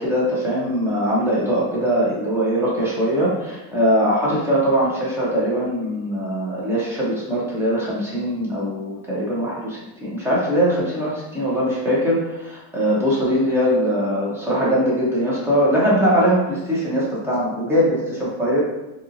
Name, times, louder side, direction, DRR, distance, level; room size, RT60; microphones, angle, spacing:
voice 1, 0.0-18.6, equal, 5° right, -6 dB, 0.6 m, -21 dB
4.1 x 2.9 x 2.5 m, 0.97 s
cardioid pair, 180°, 41 cm